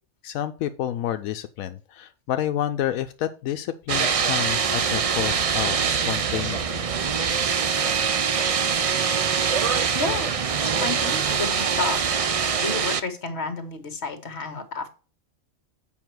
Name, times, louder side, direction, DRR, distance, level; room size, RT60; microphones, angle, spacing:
voice 1, 0.2-6.8, left 11 dB, 85° left, 9 dB, 1.0 m, -29 dB
sound 1, 3.9-13.0, right 6 dB, 65° right, 0.3 m, -24 dB
voice 2, 9.9-10.3 10.6-12.1 12.6-14.9, left 3 dB, 55° left, 7 dB, 1.7 m, -31 dB
7.4 x 5.3 x 4.6 m, 0.36 s
omnidirectional pair, 1.4 m